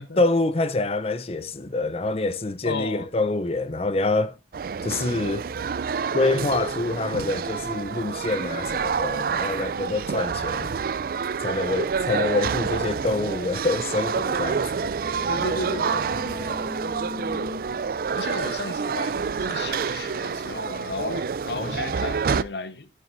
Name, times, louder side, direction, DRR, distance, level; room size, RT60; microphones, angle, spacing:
voice 1, 0.2-4.3 4.8-5.4 6.1-10.7 11.4-14.9 21.6-21.8, left 2 dB, 35° left, 0.6 m, -26 dB
voice 2, 2.6-3.1 15.3-16.1 18.1-22.9, left 3 dB, 70° left, 1.0 m, -33 dB
sound 1, 4.5-22.4, right 6 dB, 55° right, 0.4 m, -28 dB
sound 2, 14.6-20.1, left 2 dB, ahead, 2.4 m, -40 dB
11.0 x 7.4 x 2.6 m
head